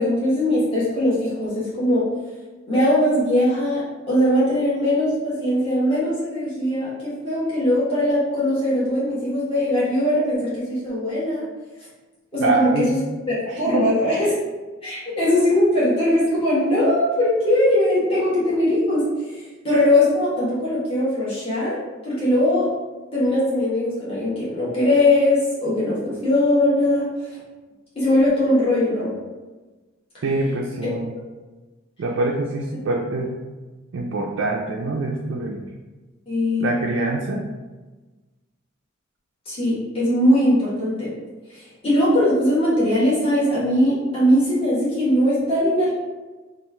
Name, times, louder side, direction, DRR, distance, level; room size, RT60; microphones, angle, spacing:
voice 1, 0.0-2.0 2.7-3.8 4.1-11.4 12.3-13.0 13.6-14.3 14.8-19.0 19.3-22.7 23.1-27.1 27.9-29.1 30.8-30.9 36.3-36.7 39.5-41.1 41.5-45.9, left 1 dB, 25° left, -10 dB, 1.1 m, -20 dB
voice 2, 12.4-12.9 13.5-13.9 30.2-31.1 32.0-33.4 33.9-35.7 36.6-37.4, right 2 dB, 55° right, -1 dB, 0.3 m, -24 dB
3.0 x 2.4 x 3.3 m, 1.2 s
head